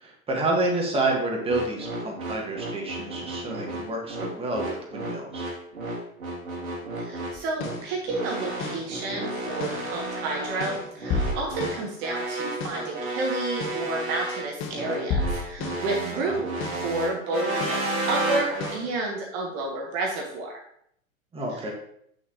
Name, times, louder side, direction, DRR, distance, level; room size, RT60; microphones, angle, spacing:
voice 1, 0.0-5.5 16.1-16.3 21.3-21.7, right 2 dB, 15° right, 0 dB, 1.7 m, -29 dB
sound 1, 1.5-18.8, right 2 dB, 80° right, 2.2 m, -32 dB
voice 2, 7.0-20.5, right 2 dB, 35° right, 0 dB, 1.4 m, -31 dB
sound 2, 7.4-7.9 8.6-8.9 9.6-9.9 10.6-11.9 12.6-12.9 13.6-13.9 14.6-15.9 16.6-16.9 17.6-17.9 18.6-18.9, left 3 dB, 30° left, 1.0 m, -32 dB
8.0 x 6.3 x 3.0 m, 0.69 s
figure-of-eight pair, 100°, 42 cm